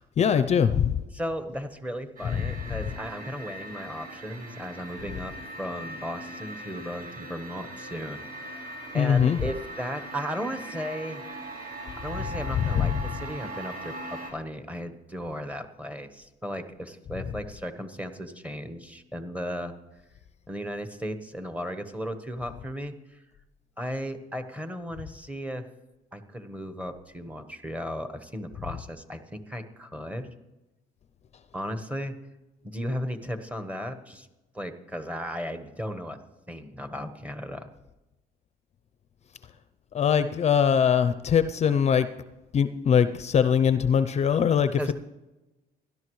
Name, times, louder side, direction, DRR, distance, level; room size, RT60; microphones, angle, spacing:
voice 1, 0.2-1.0 2.4-2.5 8.9-9.4 12.6-13.0 39.9-42.1 42.5-44.8, left 7 dB, 40° left, 12 dB, 0.5 m, -22 dB
voice 2, 1.1-11.2 12.0-19.7 20.5-23.2 23.8-25.7 26.1-30.3 31.5-32.2 32.6-34.3 34.5-36.2 36.5-37.7 44.8-44.9, equal, 10° right, 9 dB, 1.2 m, -35 dB
sound 1, 2.2-14.3, right 2 dB, 50° right, 4.7 m, -40 dB
17.0 x 12.0 x 3.2 m, 1.0 s
cardioid pair, 110°, 17 cm